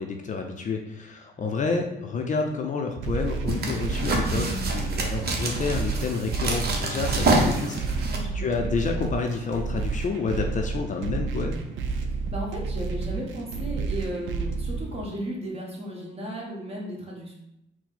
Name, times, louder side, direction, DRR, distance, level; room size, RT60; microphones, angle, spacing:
voice 1, 0.0-11.6, left 4 dB, 40° left, 3 dB, 0.5 m, -29 dB
sound 1, 3.0-15.0, right 4 dB, 80° right, 0.5 m, -31 dB
sound 2, 3.1-8.2, right 2 dB, 55° right, 0.8 m, -27 dB
voice 2, 8.0-8.5 12.3-17.3, right 1 dB, 30° right, -3 dB, 1.3 m, -35 dB
4.4 x 2.1 x 4.0 m, 0.83 s
cardioid pair, 90°, 20 cm